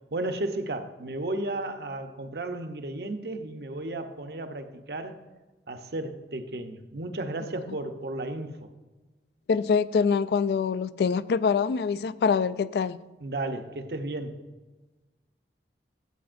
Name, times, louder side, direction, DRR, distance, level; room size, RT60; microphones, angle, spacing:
voice 1, 0.1-5.2 5.7-8.7 13.2-14.4, right 2 dB, 65° right, 0.8 m, -34 dB
voice 2, 9.5-13.0, left 5 dB, 65° left, 0.3 m, -24 dB
13.5 x 8.1 x 2.5 m
head